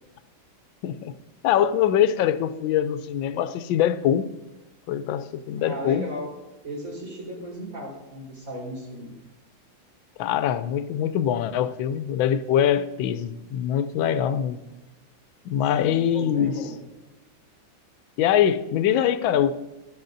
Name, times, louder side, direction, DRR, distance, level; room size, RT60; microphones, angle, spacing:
voice 1, 0.8-1.1 1.4-4.3 4.9-6.1 10.2-14.6 15.4-16.5 18.2-19.5, left 10 dB, 90° left, 1.4 m, -23 dB
voice 2, 5.6-6.4 6.6-9.1 15.7-16.7, equal, 45° right, 4.4 m, -35 dB
16.5 x 12.5 x 2.6 m
omnidirectional pair, 2.1 m